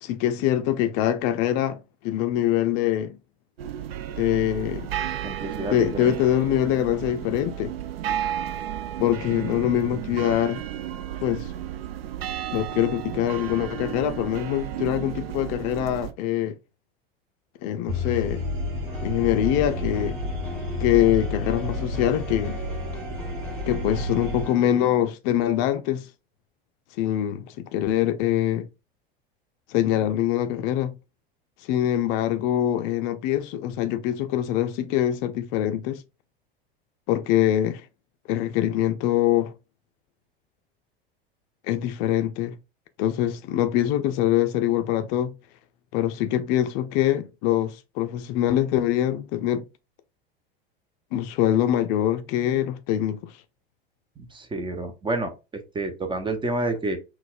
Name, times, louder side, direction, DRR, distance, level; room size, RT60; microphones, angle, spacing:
voice 1, 0.0-3.2 4.2-4.9 5.7-7.7 9.0-10.6 11.2-11.5 12.5-16.6 17.6-18.4 19.0-20.2 20.8-22.6 23.7-26.1 27.0-28.7 29.7-30.9 31.6-36.0 37.1-37.9 38.3-39.5 41.7-42.6 43.0-45.3 45.9-49.6 51.1-53.4, left 12 dB, 50° left, 0.4 m, -24 dB
sound 1, 3.6-16.1, right 11 dB, 80° right, 0.5 m, -33 dB
voice 2, 5.2-6.1 54.2-57.0, right 2 dB, 15° right, 0.7 m, -29 dB
sound 2, 17.9-24.4, left 2 dB, 45° right, 1.2 m, -30 dB
sound 3, 18.9-24.8, equal, 5° left, 1.4 m, -41 dB
4.0 x 2.3 x 2.4 m
hypercardioid pair, 90°, 29 cm